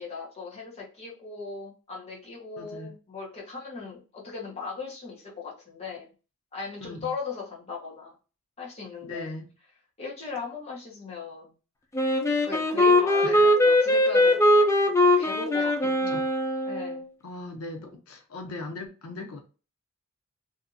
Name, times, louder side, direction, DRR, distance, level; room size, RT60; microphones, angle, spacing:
voice 1, 0.0-6.1 6.5-8.1 8.6-9.3 10.0-11.5 12.4-16.2 16.6-17.0, left 5 dB, 30° left, 0.9 m, -38 dB
voice 2, 2.6-2.9 6.9-7.1 9.0-9.5 13.2-13.5 16.1-16.3 17.2-19.4, left 2 dB, 75° left, 0.5 m, -39 dB
Wind instrument woodwind instrument, 11.9-17.0, left 1 dB, 15° left, 0.4 m, -21 dB
2.7 x 2.5 x 2.4 m
head